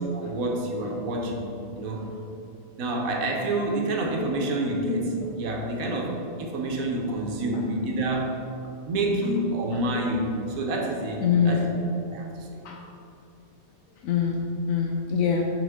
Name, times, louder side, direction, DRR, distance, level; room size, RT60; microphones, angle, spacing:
voice 1, 0.0-2.1 2.8-8.4 8.8-11.7 12.1-12.6, right 1 dB, 85° right, 1 dB, 1.3 m, -28 dB
voice 2, 11.2-11.7 12.6-12.8 14.0-14.4 14.7-15.5, left 7 dB, 75° left, 1 dB, 1.0 m, -24 dB
5.9 x 5.8 x 3.6 m, 2.8 s
omnidirectional pair, 1.4 m